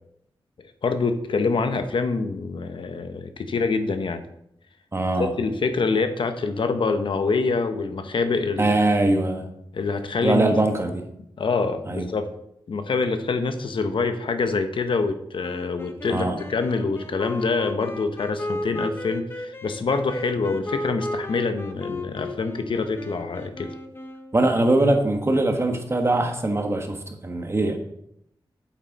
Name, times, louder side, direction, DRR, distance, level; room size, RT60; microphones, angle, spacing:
voice 1, 0.8-4.2 5.2-8.7 9.7-10.5 11.4-12.3 12.7-23.7, left 4 dB, 70° left, 8 dB, 0.9 m, -25 dB
voice 2, 4.9-5.3 8.6-9.5 10.2-11.0 11.8-12.1 16.1-16.4 24.3-27.8, right 2 dB, 30° right, 5 dB, 1.4 m, -22 dB
sound 1, 15.4-24.6, left 1 dB, 25° left, 0.9 m, -34 dB
8.8 x 7.7 x 4.1 m, 0.76 s
wide cardioid pair, 90°, 9 cm